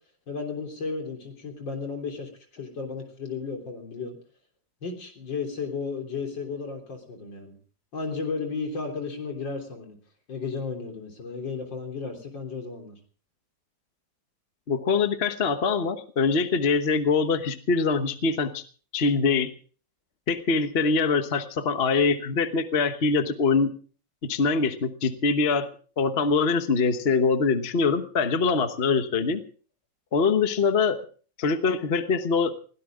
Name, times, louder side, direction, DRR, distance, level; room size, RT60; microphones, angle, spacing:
voice 1, 0.3-4.2 4.8-7.6 7.9-10.0 10.3-13.0, left 4 dB, 75° left, 3 dB, 4.1 m, -34 dB
voice 2, 14.7-18.6 18.9-19.5 20.3-23.7 24.2-25.7 26.0-29.4 30.1-31.0 31.4-32.5, left 4 dB, 40° left, 9 dB, 1.2 m, -23 dB
21.5 x 17.0 x 3.7 m, 0.41 s
omnidirectional pair, 2.0 m